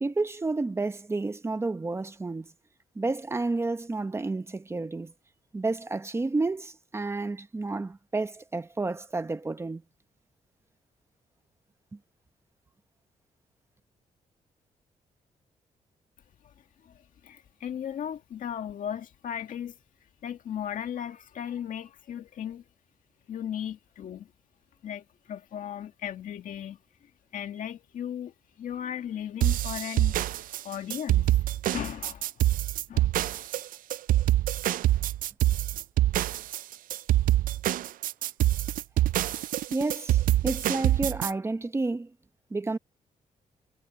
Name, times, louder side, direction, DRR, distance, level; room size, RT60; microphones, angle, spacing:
voice 1, 0.0-2.5 3.0-5.1 5.5-9.8 11.9-12.0 39.7-42.1 42.5-42.8, right 3 dB, 20° right, 0.9 m, -30 dB
voice 2, 16.8-19.8 20.2-22.6 23.3-24.3 24.8-30.2 30.6-31.4 31.7-32.3 32.9-33.1, left 9 dB, 70° left, 2.0 m, -36 dB
sound 1, 29.4-41.3, right 14 dB, 80° right, 0.4 m, -25 dB
wide cardioid pair, 140°, 14 cm